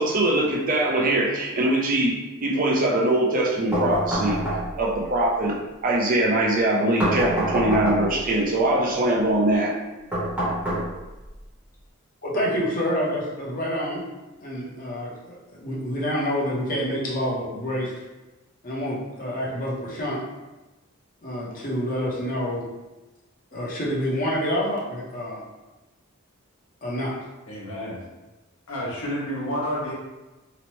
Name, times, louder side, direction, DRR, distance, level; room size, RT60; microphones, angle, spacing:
voice 1, 0.0-4.4 4.8-9.7, right 1 dB, 40° right, -2 dB, 0.4 m, -22 dB
sound 1, 3.7-5.0 7.0-8.3 10.1-11.3, right 1 dB, 10° right, 0.8 m, -26 dB
voice 2, 12.2-14.0 14.4-17.9 18.6-20.2 21.2-22.6 23.5-25.4 26.8-27.2, equal, 40° left, -5 dB, 0.7 m, -27 dB
voice 3, 27.5-28.1 28.7-29.9, equal, 80° left, -5 dB, 0.9 m, -30 dB
2.9 x 2.1 x 3.0 m, 1.1 s
head